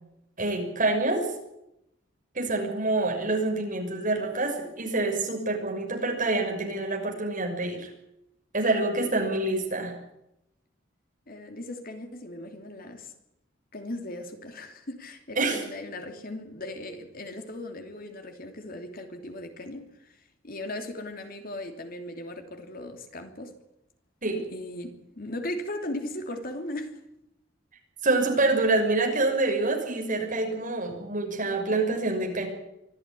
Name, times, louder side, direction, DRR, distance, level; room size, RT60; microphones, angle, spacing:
voice 1, 0.4-1.3 2.3-7.9 8.5-9.9 15.4-15.6 24.2-24.4 28.0-32.5, right 2 dB, 45° right, 6.3 m, -26 dB
voice 2, 11.3-13.1 13.7-20.2 20.4-23.5 24.5-27.0, left 1 dB, 50° left, 3.0 m, -38 dB
24.5 x 14.5 x 9.9 m
head